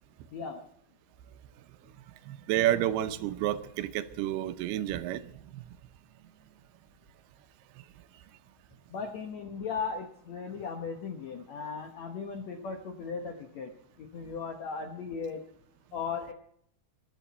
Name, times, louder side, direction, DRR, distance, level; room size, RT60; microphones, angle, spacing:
voice 1, 0.3-0.6 8.9-15.4 15.9-16.3, left 5 dB, 70° left, 1.7 m, -37 dB
voice 2, 2.2-5.6, right 13 dB, 80° right, 2.6 m, -30 dB
24.0 x 11.0 x 4.2 m
omnidirectional pair, 4.7 m